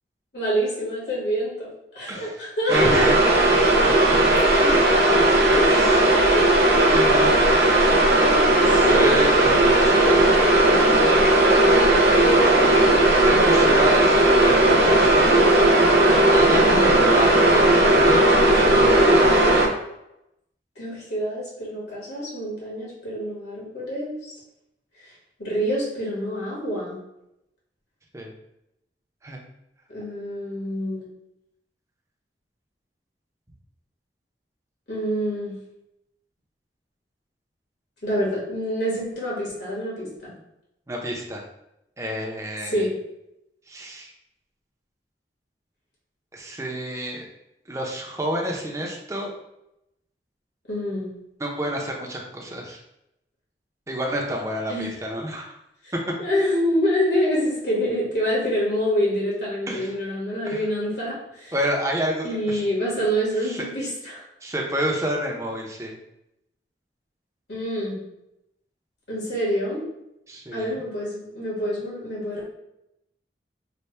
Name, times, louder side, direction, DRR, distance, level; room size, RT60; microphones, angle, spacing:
voice 1, 0.3-3.0 4.5-4.7 5.5-6.8 8.9-9.2 9.9-10.3 12.3-12.7 16.5-16.9 20.7-24.1 25.0-25.1 25.4-27.0 29.9-31.1 34.9-35.6 38.0-40.3 42.6-42.9 50.7-51.1 54.7-55.0 55.8-55.9 56.2-61.5 62.2-64.2 67.5-68.0 69.1-69.8 70.5-72.5, equal, 75° left, -5 dB, 1.4 m, -27 dB
voice 2, 2.7-3.2 3.5-4.4 5.7-5.9 6.9-7.7 8.9-10.2 12.7-12.8 13.2-15.5 16.1-19.3 28.1-28.3 29.2-29.4 40.9-41.4 42.0-42.9 43.7-44.1 46.3-47.3 47.7-49.3 51.4-52.8 53.9-55.5 55.9-56.0 59.7-59.9 60.5-60.7 61.5-62.6 63.4-63.6 64.4-66.0 70.3-70.8, equal, 15° right, 0 dB, 0.5 m, -29 dB
sound 1, 2.7-19.7, right 1 dB, 65° right, 0.7 m, -17 dB
3.3 x 2.1 x 4.2 m, 0.85 s
head